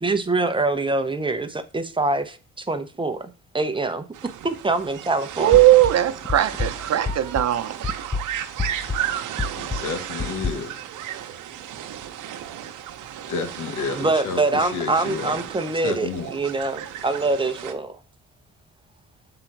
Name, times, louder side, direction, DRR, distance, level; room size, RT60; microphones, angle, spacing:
voice 1, 0.0-3.3 3.5-4.0 4.4-5.6 14.0-18.0, right 3 dB, 15° right, 0.8 m, -24 dB
sound 1, 4.1-17.7, right 11 dB, 85° right, 0.9 m, -34 dB
voice 2, 5.4-7.8, right 14 dB, 60° right, 0.9 m, -18 dB
sound 2, 5.5-7.6 7.8-10.5, left 4 dB, 10° left, 0.4 m, -29 dB
voice 3, 9.5-10.8 13.3-15.4 15.8-16.3, left 5 dB, 75° left, 1.2 m, -31 dB
7.2 x 3.9 x 4.6 m
cardioid pair, 90°, 30 cm